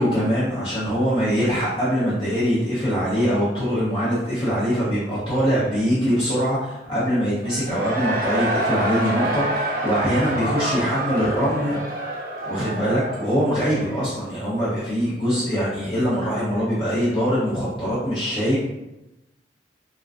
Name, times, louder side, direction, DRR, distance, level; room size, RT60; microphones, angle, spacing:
voice 1, 0.0-11.8 12.5-18.6, equal, 30° left, -10 dB, 0.6 m, -23 dB
Cheering / Crowd, 7.4-14.2, right 1 dB, 55° right, 0.4 m, -27 dB
2.4 x 2.2 x 2.3 m, 0.95 s
head